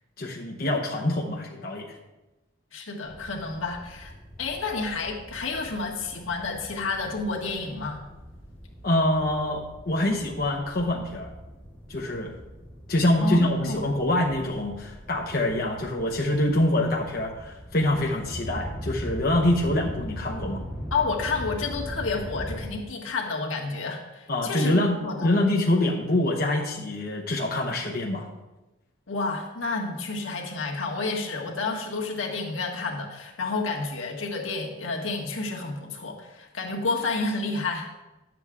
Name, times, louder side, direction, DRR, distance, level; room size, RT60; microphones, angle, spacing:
voice 1, 0.2-2.0 8.8-11.3 11.9-12.3 12.9-20.6 24.3-28.3, left 1 dB, 45° left, -1 dB, 0.9 m, -25 dB
voice 2, 2.7-4.1 4.4-8.1 13.2-13.8 20.9-25.3 29.1-37.9, left 3 dB, 80° left, 0 dB, 1.5 m, -30 dB
sound 1, 3.0-22.7, equal, 5° left, 2.7 m, -40 dB
10.5 x 7.7 x 3.6 m, 1.1 s
head